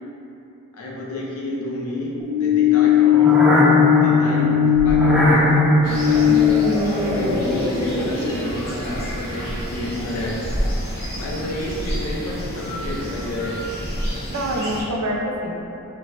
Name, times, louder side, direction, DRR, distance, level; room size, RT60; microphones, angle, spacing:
voice 1, 0.7-6.3 7.1-10.5 11.1-13.6, left 1 dB, 75° left, -4 dB, 0.6 m, -29 dB
sound 1, 2.2-8.6, left 5 dB, 5° right, 0.3 m, -17 dB
sound 2, 5.8-14.8, equal, 50° left, 0.9 m, -30 dB
voice 2, 7.0-7.4 14.3-15.5, right 1 dB, 75° right, -1 dB, 0.4 m, -26 dB
4.4 x 2.1 x 2.6 m, 2.8 s
head